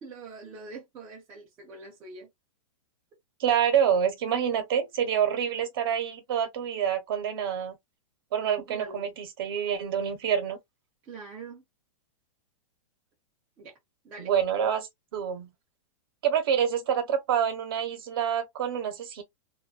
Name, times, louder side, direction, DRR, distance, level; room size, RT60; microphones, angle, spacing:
voice 1, 0.0-2.3 8.7-9.2 11.0-11.6 13.6-13.7 14.0-14.3, right 4 dB, 10° right, 0.3 m, -44 dB
voice 2, 3.4-7.8 8.3-10.6 14.2-15.5 16.2-19.2, right 8 dB, 40° right, 0.8 m, -27 dB
2.4 x 2.2 x 2.4 m
supercardioid pair, 175°, 18 cm